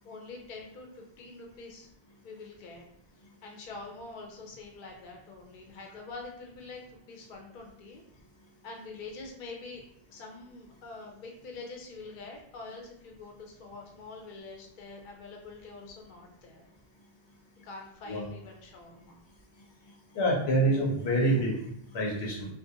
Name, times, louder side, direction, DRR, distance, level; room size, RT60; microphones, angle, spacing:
voice 1, 0.0-1.9 2.2-2.8 3.4-6.8 7.1-8.0 8.6-9.8 10.1-16.7 17.6-19.2, left 3 dB, 60° left, 1 dB, 0.6 m, -45 dB
voice 2, 20.1-22.5, right 1 dB, 90° left, -2 dB, 1.0 m, -27 dB
2.5 x 2.1 x 2.7 m, 0.74 s
omnidirectional pair, 1.0 m